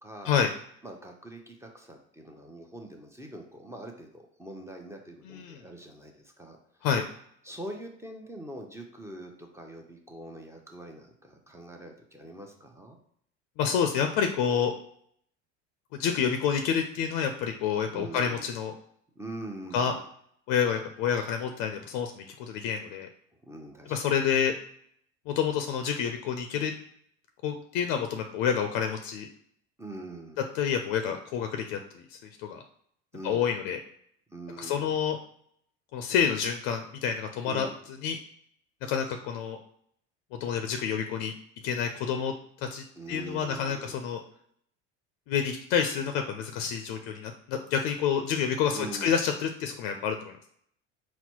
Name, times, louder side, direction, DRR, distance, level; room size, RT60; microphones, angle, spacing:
voice 1, 0.0-0.4 0.8-6.6 7.4-13.0 17.9-18.5 19.2-20.0 23.5-24.2 29.8-30.4 33.1-33.5 34.3-35.0 37.4-37.7 43.0-44.0 48.7-49.1, right 1 dB, 10° right, 2 dB, 0.7 m, -43 dB
voice 2, 5.2-5.6 6.8-7.0 13.6-14.7 16.0-18.7 19.7-19.9 20.5-23.1 23.9-24.5 25.3-26.7 27.4-29.3 30.5-32.6 33.2-33.8 34.6-35.2 35.9-37.7 38.0-38.2 38.9-39.6 40.4-41.3 41.6-42.3 42.6-44.2 45.3-50.3, left 7 dB, 70° left, 6 dB, 0.5 m, -28 dB
4.1 x 2.1 x 4.4 m, 0.67 s
supercardioid pair, 85°, 34 cm